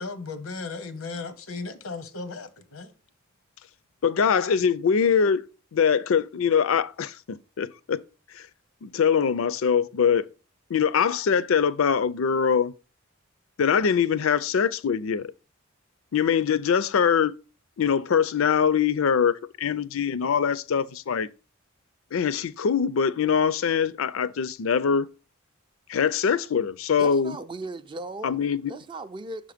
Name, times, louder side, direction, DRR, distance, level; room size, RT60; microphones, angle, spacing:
voice 1, 0.0-2.9, left 3 dB, 90° left, 0.8 m, -36 dB
voice 2, 4.0-5.4 5.7-8.0 8.4-8.5 8.8-10.2 10.7-12.7 13.6-15.3 16.1-17.3 17.8-21.3 22.1-25.1 25.9-27.3 28.2-28.7, left 7 dB, 70° left, 0.4 m, -23 dB
voice 3, 27.0-28.4 28.7-29.5, right 2 dB, 25° right, 0.3 m, -37 dB
6.3 x 3.7 x 5.0 m
head